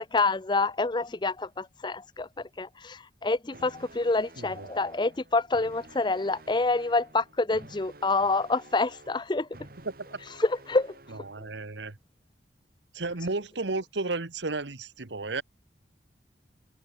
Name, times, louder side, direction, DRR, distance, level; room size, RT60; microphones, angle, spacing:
voice 1, 0.0-9.5 10.4-11.0 11.4-11.5, left 3 dB, 25° left, 0.6 m, -27 dB
sound 1, 3.5-11.5, right 2 dB, 55° right, 2.5 m, -51 dB
voice 2, 4.4-4.7 9.8-9.9 11.1-12.0 12.9-15.4, right 3 dB, 80° right, 1.5 m, -33 dB
head